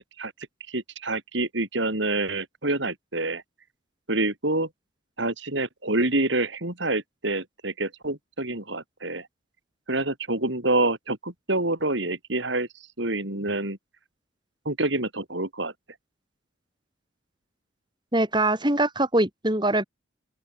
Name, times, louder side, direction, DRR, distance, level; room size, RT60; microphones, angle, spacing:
voice 1, 0.7-3.4 4.1-4.7 5.2-9.3 9.9-12.7 13.0-13.8 14.7-15.7, right 2 dB, 60° right, 4.1 m, -27 dB
voice 2, 18.1-19.8, right 1 dB, 20° right, 3.5 m, -23 dB
open air
head